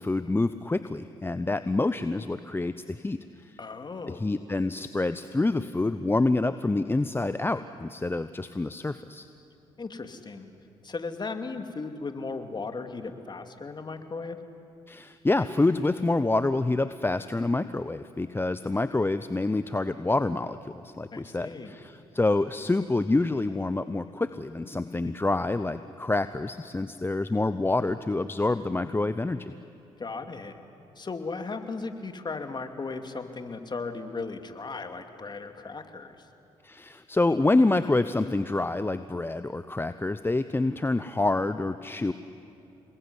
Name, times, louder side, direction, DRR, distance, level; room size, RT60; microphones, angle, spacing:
voice 1, 0.0-3.2 4.1-9.3 14.9-29.5 36.6-42.1, left 2 dB, 15° left, 12 dB, 0.9 m, -27 dB
voice 2, 3.6-4.3 9.8-10.5 10.8-14.4 21.1-21.7 30.0-30.5 31.0-36.3, left 4 dB, 35° left, 6 dB, 2.7 m, -36 dB
28.0 x 21.0 x 9.9 m, 2.7 s
hypercardioid pair, 55°, 13 cm